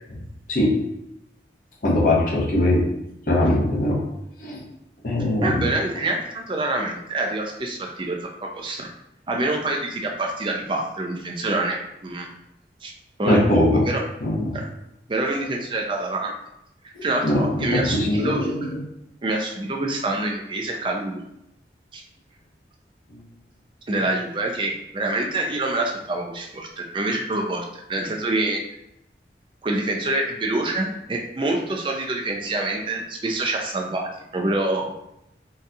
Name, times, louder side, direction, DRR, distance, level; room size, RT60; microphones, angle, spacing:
voice 1, 0.5-0.8 1.8-2.8 3.3-4.0 4.4-4.6 5.0-5.7 13.3-13.9 14.2-14.6 17.0-18.8 23.1-23.2, left 1 dB, 50° left, -3 dB, 0.7 m, -21 dB
voice 2, 5.4-8.9 9.3-12.3 12.8-12.9 13.2-14.0 14.5-14.7 15.1-16.3 17.0-18.5 19.2-21.2 21.9-22.0 23.9-28.6 29.6-34.9, right 2 dB, 30° right, 1 dB, 0.4 m, -26 dB
4.0 x 2.3 x 2.7 m, 0.84 s
head